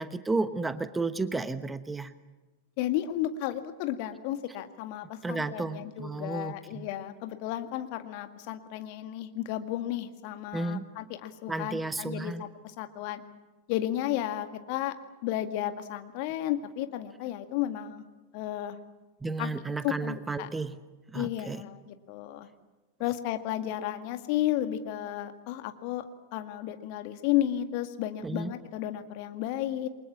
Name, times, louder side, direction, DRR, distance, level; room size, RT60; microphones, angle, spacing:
voice 1, 0.0-2.1 5.2-6.9 10.5-10.9 11.5-12.4 19.2-20.8 21.1-21.6 28.2-28.5, right 3 dB, 10° right, 12 dB, 1.1 m, -32 dB
voice 2, 2.8-13.2 13.7-14.9 15.2-18.0 18.3-18.8 19.4-19.5 19.8-20.5 21.1-22.5 23.0-26.0 26.3-29.9, left 13 dB, 45° left, 8 dB, 1.9 m, -33 dB
28.5 x 23.5 x 7.2 m, 1.2 s
figure-of-eight pair, 90°, 0 cm